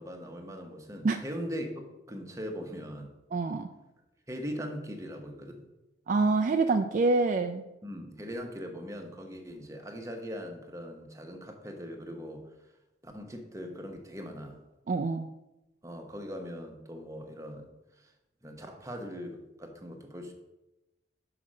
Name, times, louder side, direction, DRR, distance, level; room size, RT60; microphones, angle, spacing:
voice 1, 0.0-3.1 4.3-5.6 7.8-12.5 13.0-14.6 15.8-18.1 18.4-20.3, equal, 15° right, 3 dB, 0.9 m, -40 dB
voice 2, 3.3-3.7 6.1-7.6 14.9-15.3, right 3 dB, 45° right, 5 dB, 0.3 m, -26 dB
5.8 x 4.9 x 6.3 m, 0.97 s
head